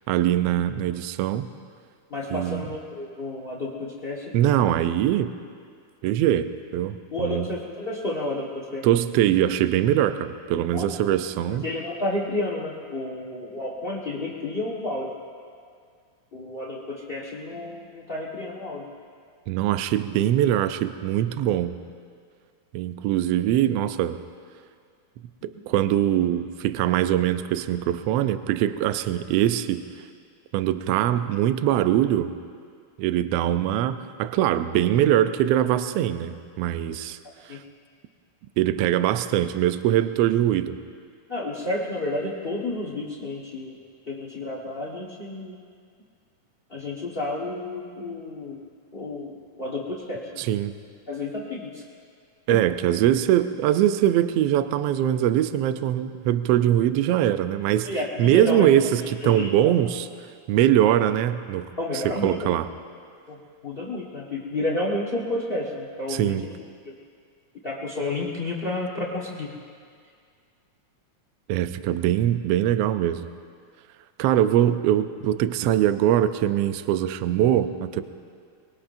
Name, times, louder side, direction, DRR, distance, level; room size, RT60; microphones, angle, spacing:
voice 1, 0.1-1.5 2.3-2.7 4.3-5.3 6.0-7.5 8.8-11.7 19.5-21.8 22.7-24.2 25.4-29.8 30.5-32.3 33.0-37.2 37.5-37.6 38.6-40.8 50.4-50.7 52.5-57.9 58.2-60.1 60.5-61.7 62.0-62.7 66.1-66.4 71.5-73.3 74.2-78.0, right 11 dB, 85° right, 11 dB, 1.4 m, -22 dB
voice 2, 2.1-4.8 7.1-8.9 10.7-11.2 11.5-15.1 16.3-18.9 37.5-37.6 41.3-43.8 44.1-45.6 46.7-48.6 48.9-50.4 51.1-51.8 52.5-52.6 57.8-58.7 59.2-59.7 61.8-62.5 63.3-66.6 66.8-67.0 67.6-69.5, left 2 dB, 65° left, -2 dB, 0.5 m, -31 dB
24.0 x 21.5 x 2.6 m, 2.2 s
omnidirectional pair, 3.5 m